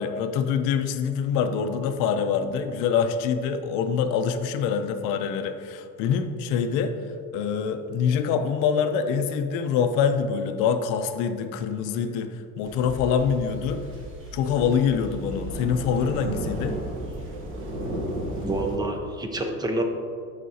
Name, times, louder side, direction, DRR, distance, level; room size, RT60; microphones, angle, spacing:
voice 1, 0.0-7.0 7.3-13.8 14.3-16.8, left 7 dB, 75° left, 8 dB, 0.7 m, -25 dB
sound 1, 12.6-18.8, right 1 dB, 40° right, 1.2 m, -34 dB
voice 2, 18.4-19.8, right 2 dB, 15° right, 4 dB, 0.5 m, -28 dB
12.5 x 5.0 x 2.8 m, 2.3 s
cardioid pair, 160°, 32 cm